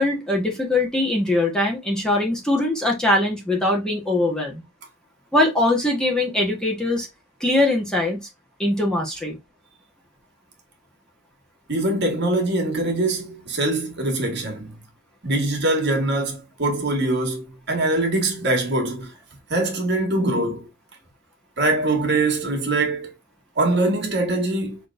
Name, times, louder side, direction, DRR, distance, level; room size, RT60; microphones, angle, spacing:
voice 1, 0.0-4.6 5.3-7.1 7.4-8.2 8.6-9.4, left 1 dB, 5° left, 1.3 m, -21 dB
voice 2, 11.7-14.8 15.2-19.1 19.5-20.7 21.6-23.1 23.6-24.8, right 2 dB, 55° right, 1.8 m, -23 dB
6.1 x 3.2 x 2.6 m
head